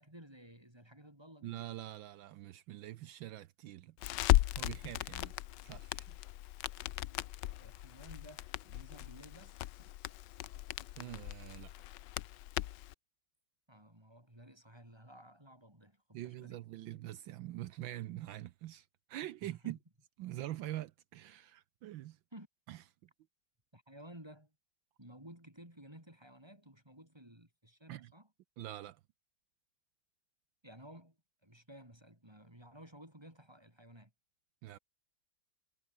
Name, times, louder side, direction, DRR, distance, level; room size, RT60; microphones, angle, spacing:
voice 1, 0.0-1.6 7.6-9.9 13.7-16.6 19.4-19.7 22.3-22.5 23.7-24.5 25.0-28.3 30.6-31.2 31.4-34.1, right 1 dB, 10° right, 4.2 m, -55 dB
voice 2, 1.4-4.0 4.6-5.3 5.6-6.1 11.0-11.7 16.1-19.8 20.2-22.2 22.7-22.8 27.9-28.1 28.6-29.0 34.6-34.8, right 14 dB, 75° right, 1.4 m, -44 dB
Crackle, 4.0-12.9, left 15 dB, 70° left, 1.2 m, -36 dB
omnidirectional pair, 2.2 m